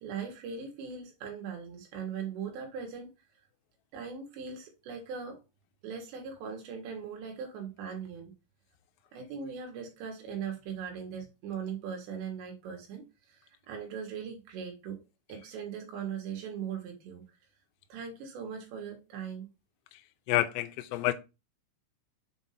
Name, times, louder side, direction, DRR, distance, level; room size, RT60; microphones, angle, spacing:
voice 1, 0.0-3.1 3.9-5.4 5.8-8.3 9.1-15.0 15.3-17.2 17.9-19.5, right 7 dB, 70° right, 3.1 m, -39 dB
voice 2, 20.3-21.1, left 16 dB, 85° left, 3.2 m, -28 dB
7.4 x 2.6 x 5.6 m
omnidirectional pair, 5.8 m